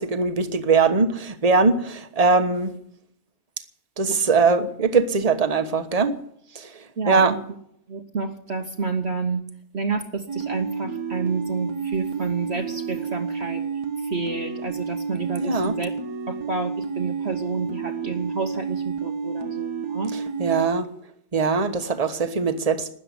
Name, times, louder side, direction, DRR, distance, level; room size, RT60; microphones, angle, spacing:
voice 1, 0.0-2.8 4.0-6.1 6.5-6.7 7.1-7.4 15.4-15.7 20.1-20.9 21.3-22.9, right 4 dB, 25° right, 9 dB, 1.2 m, -21 dB
voice 2, 7.0-7.3 7.9-9.4 9.7-13.6 14.0-15.9 16.3-20.1, right 4 dB, 50° right, 4 dB, 1.3 m, -29 dB
sound 1, 10.3-20.6, right 5 dB, 80° right, 1.7 m, -30 dB
13.0 x 9.9 x 9.8 m, 0.69 s
omnidirectional pair, 1.6 m